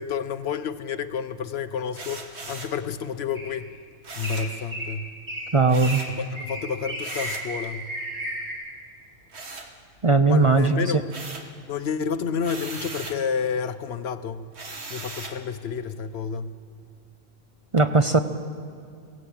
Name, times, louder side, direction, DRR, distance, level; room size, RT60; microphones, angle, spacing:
voice 1, 0.0-3.7 4.2-5.1 6.1-7.9 10.3-11.1 11.7-14.5 14.9-16.6, left 6 dB, 75° left, 11 dB, 1.0 m, -30 dB
sound 1, 1.9-2.8 4.0-4.6 5.7-6.2 7.0-7.5 9.3-10.2 10.6-11.6 12.4-13.2 14.5-15.4, right 3 dB, 85° right, 1.8 m, -38 dB
sound 2, 3.3-3.7 4.2-4.5 4.7-4.9 5.3-5.5 5.8-6.0 6.4-8.5, equal, 50° right, 7.7 m, -33 dB
voice 2, 5.5-6.0 10.0-10.8 17.7-18.2, right 3 dB, 35° right, 8 dB, 0.6 m, -18 dB
20.5 x 16.5 x 8.6 m, 2.3 s
omnidirectional pair, 1.1 m